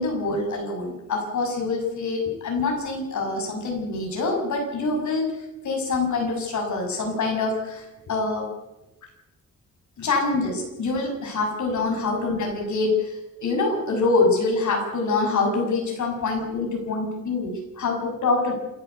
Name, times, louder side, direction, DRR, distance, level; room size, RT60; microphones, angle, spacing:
voice 1, 0.0-5.3 5.6-8.5 10.0-18.5, left 3 dB, 75° left, 2 dB, 7.0 m, -25 dB
28.0 x 11.5 x 8.3 m, 0.97 s
wide cardioid pair, 135°, 29 cm